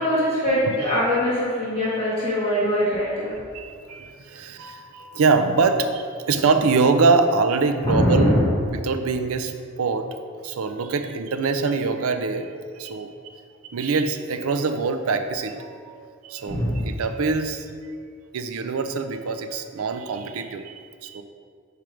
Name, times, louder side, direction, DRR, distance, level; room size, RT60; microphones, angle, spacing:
voice 1, 0.0-3.3 7.8-8.5 16.5-16.9, equal, 25° left, -9 dB, 1.5 m, -22 dB
voice 2, 0.6-1.0 3.5-8.4 8.7-10.1 10.4-13.3 13.6-17.7 18.3-21.2, right 4 dB, 80° right, 8 dB, 0.5 m, -24 dB
5.0 x 4.5 x 4.9 m, 2.1 s
head